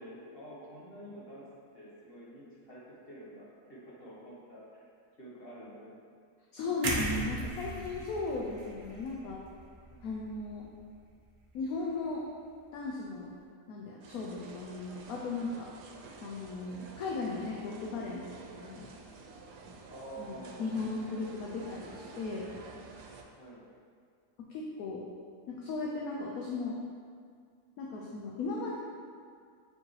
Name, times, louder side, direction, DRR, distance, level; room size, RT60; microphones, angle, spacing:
voice 1, 0.0-1.5 1.7-4.9 5.2-6.0 6.6-6.9 9.9-10.1 16.7-16.9 19.9-20.7 23.4-23.6, right 1 dB, 40° left, -7 dB, 1.4 m, -48 dB
voice 2, 6.5-9.4 10.0-10.7 11.5-12.2 12.7-13.3 13.7-15.7 16.2-18.9 20.2-22.5 24.5-25.1 25.5-26.8 27.8-28.8, left 3 dB, 70° left, -2 dB, 1.0 m, -36 dB
sound 1, 6.8-10.9 11.2-11.4, right 2 dB, 55° right, 0.5 m, -38 dB
sound 2, 14.0-23.2, right 4 dB, 85° right, 1.2 m, -50 dB
7.2 x 4.8 x 3.2 m, 2.2 s
omnidirectional pair, 1.7 m